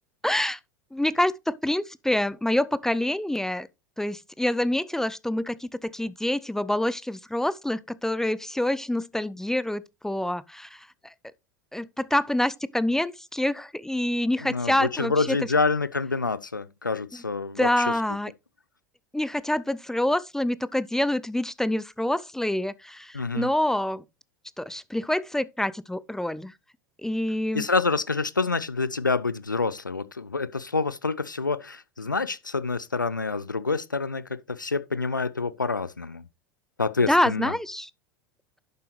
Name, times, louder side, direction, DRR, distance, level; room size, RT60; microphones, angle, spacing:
voice 1, 0.2-0.6 0.9-3.7 4.0-10.8 11.7-15.4 17.6-18.3 19.1-24.0 24.6-26.5 27.0-27.7 37.1-37.9, left 1 dB, 5° left, 0.5 m, -26 dB
voice 2, 14.4-17.9 23.1-23.5 27.5-34.2 34.5-36.2 36.8-37.5, left 4 dB, 90° left, 0.6 m, -27 dB
11.0 x 7.8 x 3.1 m
figure-of-eight pair, 80°, 10 cm